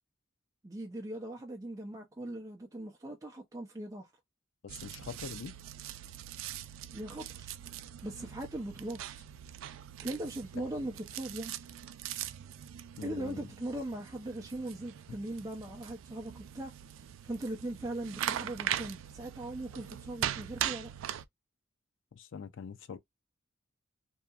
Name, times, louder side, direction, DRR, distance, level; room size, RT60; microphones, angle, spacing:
voice 1, 0.6-4.1 6.9-7.5 8.0-9.2 10.0-11.5 13.0-16.7 17.2-20.9, right 1 dB, 15° right, 0.4 m, -40 dB
voice 2, 4.6-5.5 13.0-13.5 22.2-23.0, left 6 dB, 70° left, 0.4 m, -43 dB
rolling and lighting a cigarette, 4.7-21.3, right 11 dB, 85° right, 0.3 m, -41 dB
2.7 x 2.4 x 2.3 m
head